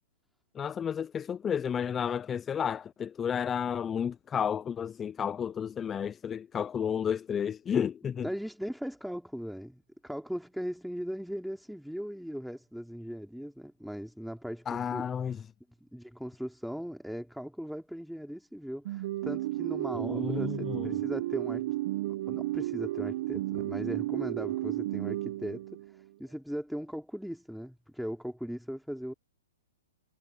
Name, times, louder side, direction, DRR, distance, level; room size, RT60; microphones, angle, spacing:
voice 1, 0.5-8.3 14.7-15.4 20.0-21.0, left 8 dB, 20° left, 0.8 m, -32 dB
voice 2, 8.2-15.1 15.8-21.7 22.1-29.1, equal, ahead, 3.6 m, -39 dB
sound 1, 18.9-26.0, right 16 dB, 50° right, 1.4 m, -33 dB
hypercardioid pair, 120°, 0 cm